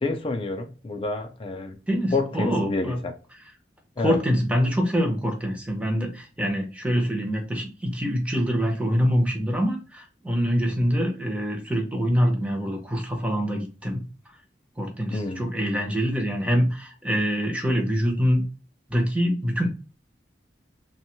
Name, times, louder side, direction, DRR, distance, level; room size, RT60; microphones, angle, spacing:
voice 1, 0.0-1.8 2.1-3.1 4.0-4.2 15.1-15.5, left 3 dB, 30° left, 0.4 m, -28 dB
voice 2, 1.9-3.0 4.0-14.0 14.8-18.4 18.9-19.7, equal, 5° right, 0.6 m, -25 dB
3.0 x 2.2 x 2.9 m
head